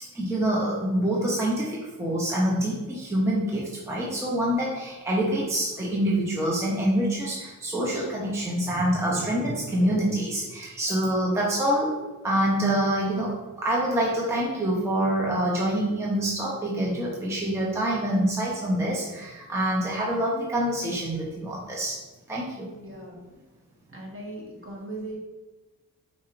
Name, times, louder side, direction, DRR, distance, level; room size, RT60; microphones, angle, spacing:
voice 1, 0.1-11.9 12.2-22.0 22.3-22.7, right 1 dB, 10° right, -5 dB, 0.7 m, -26 dB
voice 2, 22.8-23.2 23.9-25.1, right 2 dB, 35° right, -3 dB, 1.2 m, -38 dB
4.4 x 4.1 x 2.5 m, 1.2 s
wide cardioid pair, 100°, 36 cm